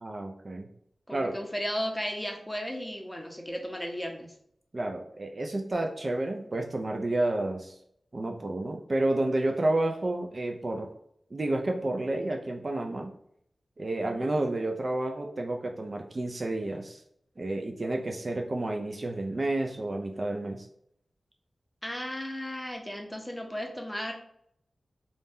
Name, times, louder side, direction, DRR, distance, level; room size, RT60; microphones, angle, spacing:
voice 1, 0.0-0.7 1.1-1.4 4.7-7.8 8.1-10.9 11.3-13.1 13.8-17.0 17.4-20.7, right 2 dB, 45° right, 2 dB, 0.3 m, -30 dB
voice 2, 1.1-4.3 14.0-14.3 21.8-24.1, equal, 10° left, 2 dB, 0.6 m, -35 dB
2.6 x 2.2 x 3.4 m, 0.69 s
wide cardioid pair, 75°, 0 cm